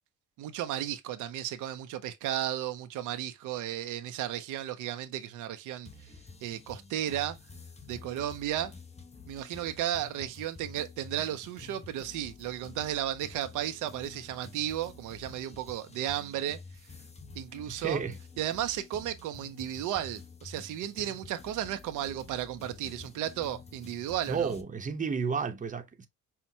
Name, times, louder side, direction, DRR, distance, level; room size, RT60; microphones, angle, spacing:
voice 1, 0.4-5.9 6.4-7.4 7.9-8.7 9.3-16.6 17.3-18.0 18.4-24.5, right 12 dB, 85° right, 0.6 m, -34 dB
sound 1, 5.9-24.6, left 4 dB, 20° left, 0.8 m, -49 dB
voice 2, 17.7-18.1 24.3-26.1, right 5 dB, 25° right, 0.8 m, -32 dB
5.7 x 2.2 x 2.7 m
cardioid pair, 90°, 30 cm